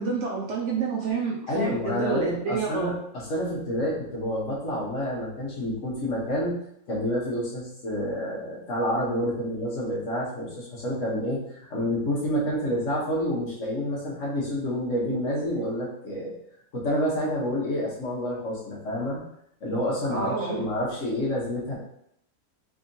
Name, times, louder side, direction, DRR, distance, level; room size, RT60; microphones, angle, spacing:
voice 1, 0.0-2.9 20.1-20.7, right 4 dB, 65° right, -3 dB, 0.8 m, -29 dB
voice 2, 1.5-6.6 6.9-16.3 16.7-19.2 19.6-21.8, equal, 55° left, -5 dB, 1.4 m, -28 dB
3.5 x 3.3 x 2.7 m, 0.73 s
omnidirectional pair, 1.6 m